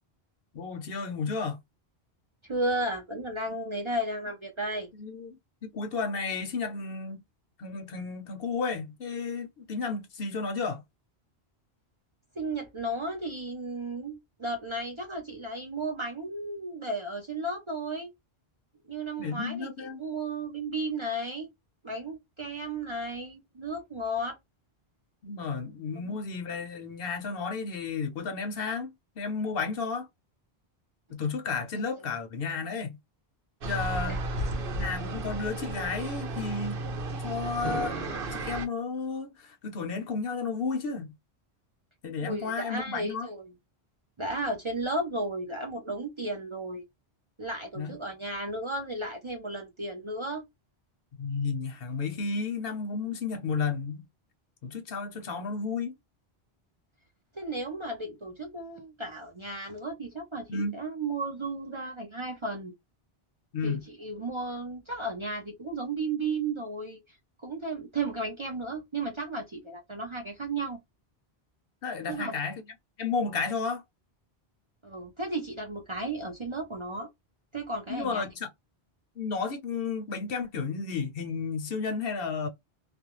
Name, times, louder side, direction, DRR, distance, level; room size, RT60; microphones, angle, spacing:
voice 1, 0.5-1.6 5.0-7.2 7.6-10.8 19.2-20.0 25.2-30.1 31.1-33.0 33.6-34.2 34.7-36.8 37.2-38.0 38.3-41.1 42.0-43.3 47.8-47.9 51.2-54.0 54.6-55.9 60.5-60.8 63.5-63.8 71.8-72.6 73.0-73.8 77.9-78.5 79.2-82.5, left 4 dB, 65° left, 0.9 m, -32 dB
voice 2, 2.4-4.9 12.4-18.1 18.8-21.5 21.8-24.4 31.7-31.9 34.1-34.2 42.2-43.5 44.2-46.8 47.4-50.4 57.3-62.7 63.6-67.2 67.4-70.8 72.1-72.3 74.8-77.1 77.5-78.3, right 2 dB, 35° right, 0.5 m, -34 dB
sound 1, 33.6-38.7, right 2 dB, 65° right, 0.9 m, -33 dB
2.5 x 2.2 x 2.9 m
omnidirectional pair, 1.0 m